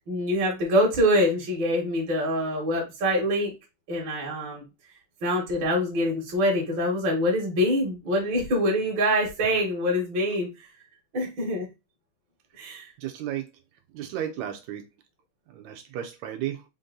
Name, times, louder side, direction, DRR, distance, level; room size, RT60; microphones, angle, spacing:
voice 1, 0.1-3.5 3.9-4.6 5.2-10.5 11.1-11.7 12.6-12.9, equal, 50° right, -2 dB, 1.6 m, -25 dB
voice 2, 13.0-13.5 13.9-14.8 15.5-16.6, right 11 dB, 75° right, 5 dB, 1.8 m, -33 dB
5.2 x 2.6 x 3.8 m, 0.25 s
omnidirectional pair, 3.6 m